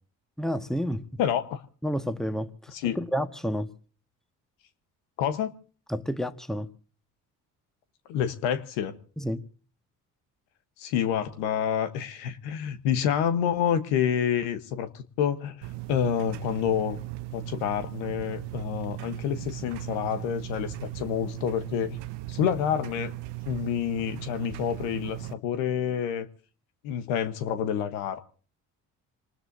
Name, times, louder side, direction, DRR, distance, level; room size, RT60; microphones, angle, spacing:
voice 1, 0.4-1.1 1.8-3.7 5.9-6.7 9.2-9.4, equal, ahead, 1.4 m, -30 dB
voice 2, 1.2-1.6 2.7-3.0 5.2-5.5 8.1-8.9 10.8-17.0 17.3-22.0 22.3-23.1 23.5-26.3 26.8-28.2, left 9 dB, 80° left, 1.2 m, -28 dB
sound 1, 15.6-25.3, right 18 dB, 70° right, 0.8 m, -38 dB
27.0 x 19.5 x 2.7 m
hypercardioid pair, 50°, 43 cm